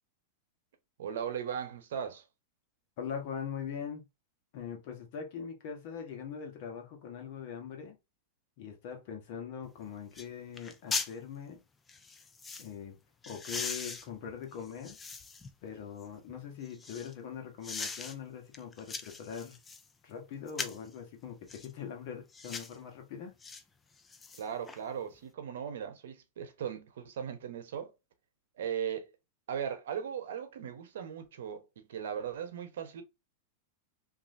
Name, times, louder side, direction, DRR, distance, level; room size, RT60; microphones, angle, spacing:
voice 1, 1.0-2.2 24.4-27.9 28.6-29.1 29.5-33.0, right 8 dB, 80° right, 0.8 m, -38 dB
voice 2, 3.0-4.0 4.5-8.0 8.6-11.6 12.6-13.0 13.2-15.0 15.6-19.6 20.0-23.3, left 7 dB, 55° left, 1.1 m, -42 dB
sound 1, 9.6-9.7 10.1-10.3 10.6-11.1 11.9-12.7 13.2-15.5 16.0-17.1 17.6-18.1 18.5-19.9 20.5-20.9 21.5-21.7 22.3-22.8 23.4-23.6 24.0-24.8 25.1-25.2, left 4 dB, 15° left, 0.4 m, -40 dB
3.1 x 2.6 x 2.6 m
supercardioid pair, 135°, 0 cm